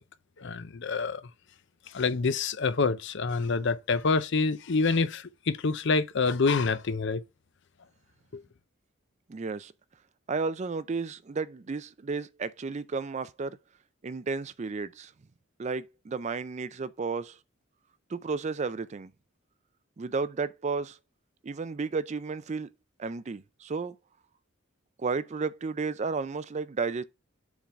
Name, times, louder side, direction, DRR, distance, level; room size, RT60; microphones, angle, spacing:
voice 1, 0.4-1.2 1.9-7.2, left 4 dB, 60° left, 0.6 m, -27 dB
voice 2, 9.3-9.7 10.3-13.6 14.0-15.1 15.6-17.4 18.1-19.1 20.0-21.0 21.4-22.7 23.0-24.0 25.0-27.0, right 4 dB, 35° right, 0.4 m, -32 dB
7.1 x 3.9 x 4.6 m
head